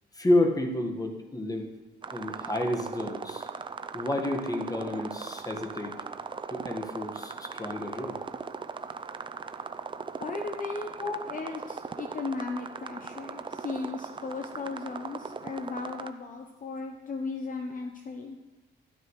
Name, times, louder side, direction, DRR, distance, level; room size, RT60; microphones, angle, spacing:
voice 1, 0.1-1.7 2.1-3.5 3.9-6.0 6.5-8.2 11.0-11.2, left 1 dB, 20° left, 3 dB, 1.6 m, -30 dB
sound 1, 2.0-16.1, right 5 dB, 25° right, 0.5 m, -39 dB
voice 2, 10.2-10.9 11.2-18.4, left 4 dB, 40° left, 4 dB, 0.9 m, -36 dB
12.5 x 11.5 x 3.2 m, 1.1 s
cardioid pair, 90°, 20 cm